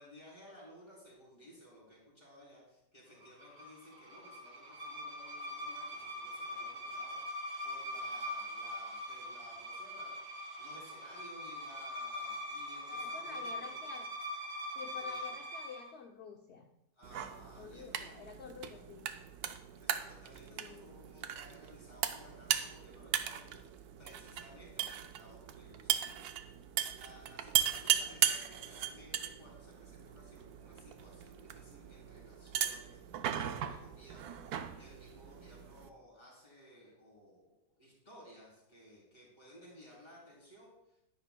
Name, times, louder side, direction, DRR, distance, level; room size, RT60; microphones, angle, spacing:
voice 1, 0.0-10.1 10.6-13.8 14.8-15.3 17.0-18.2 19.8-26.6 26.9-34.4 34.8-41.0, equal, 25° left, -5 dB, 3.6 m, -57 dB
sound 1, 3.2-15.9, left 1 dB, 40° right, 1.7 m, -42 dB
voice 2, 12.9-14.1 14.7-16.7 17.6-19.1 20.5-21.0, left 6 dB, 65° left, 4 dB, 0.7 m, -49 dB
sound 2, 17.0-35.9, right 10 dB, 70° right, 1.1 m, -38 dB
10.5 x 10.5 x 2.2 m, 0.87 s
omnidirectional pair, 1.8 m